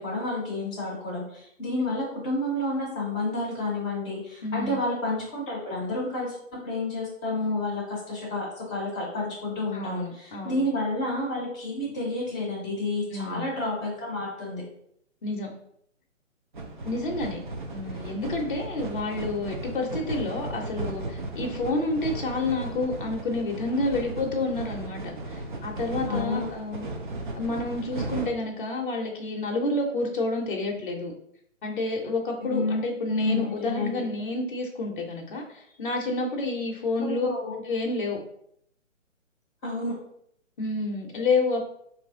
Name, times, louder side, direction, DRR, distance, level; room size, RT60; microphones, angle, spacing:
voice 1, 0.0-6.4 6.6-14.6 26.1-26.4 32.5-33.9 37.0-37.5 39.6-39.9, left 2 dB, 10° left, -7 dB, 0.7 m, -30 dB
voice 2, 4.4-4.8 9.7-10.6 13.1-13.5 15.2-15.5 16.8-17.4 17.7-26.9 27.4-31.1 31.6-37.3 37.7-38.2 40.6-41.6, left 2 dB, 40° left, 0 dB, 0.6 m, -29 dB
sound 1, 16.5-28.3, right 2 dB, 40° right, 0.4 m, -36 dB
2.9 x 2.5 x 3.6 m, 0.71 s
figure-of-eight pair, 145°, 39 cm